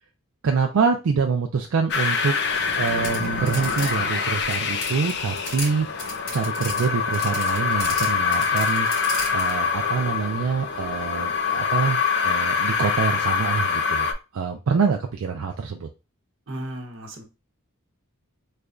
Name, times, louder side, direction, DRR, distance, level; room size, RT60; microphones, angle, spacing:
voice 1, 0.4-2.3 2.8-5.9 6.3-8.9 9.3-14.1 14.3-15.9, right 5 dB, 80° right, 3 dB, 0.4 m, -25 dB
sound 1, 1.9-14.1, left 5 dB, 50° left, 0.5 m, -25 dB
sound 2, 2.5-5.7 6.0-9.5, left 2 dB, 85° left, 1.6 m, -34 dB
voice 2, 16.5-17.2, right 1 dB, 60° right, 2 dB, 0.9 m, -34 dB
3.2 x 2.3 x 3.6 m, 0.29 s
head